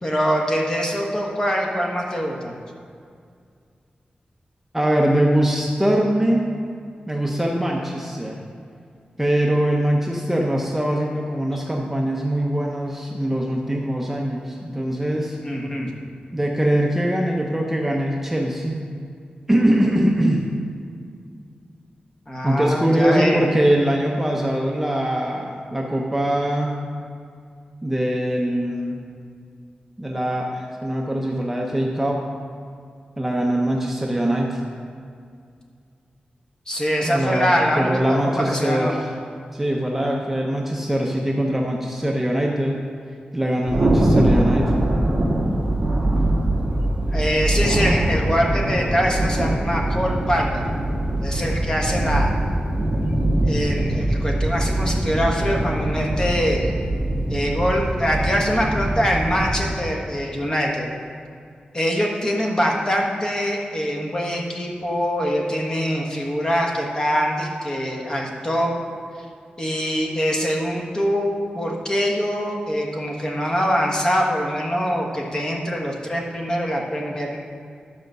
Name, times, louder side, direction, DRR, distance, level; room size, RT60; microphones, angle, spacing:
voice 1, 0.0-2.5 11.5-11.6 15.4-15.9 22.3-23.4 36.7-37.9 38.2-39.0 40.0-40.2 47.1-50.6 51.2-52.4 53.5-56.7 57.3-60.9 61.7-68.7 69.6-77.4, equal, 25° left, -1 dB, 1.4 m, -23 dB
voice 2, 4.7-6.5 7.1-8.4 9.2-15.4 16.3-18.8 19.5-20.5 22.4-26.8 27.8-29.0 30.0-32.2 33.2-34.6 37.0-39.0 39.5-42.8 43.3-44.7, right 1 dB, 10° right, -1 dB, 0.8 m, -22 dB
Thunder, 43.7-59.7, right 1 dB, 35° right, 1.5 m, -22 dB
12.0 x 5.1 x 6.7 m, 2.3 s
wide cardioid pair, 155°, 3 cm